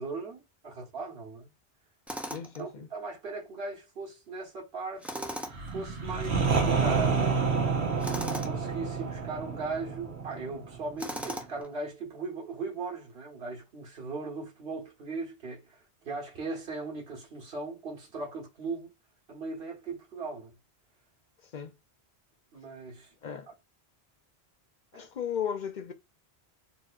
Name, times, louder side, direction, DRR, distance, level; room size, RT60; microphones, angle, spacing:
voice 1, 0.0-1.5 2.6-5.4 5.7-7.5 8.3-15.8 16.0-18.9 19.3-20.5 22.5-23.3 24.9-25.1, right 3 dB, 65° right, 1.6 m, -38 dB
Tools, 2.1-2.6 5.0-5.7 8.0-8.6 11.0-11.7, equal, ahead, 0.3 m, -37 dB
voice 2, 2.3-2.9 21.5-21.7 23.2-23.5 24.9-25.9, left 8 dB, 55° left, 0.6 m, -35 dB
sound 1, 5.5-11.2, right 5 dB, 85° right, 1.2 m, -29 dB
4.1 x 2.9 x 2.4 m
omnidirectional pair, 1.1 m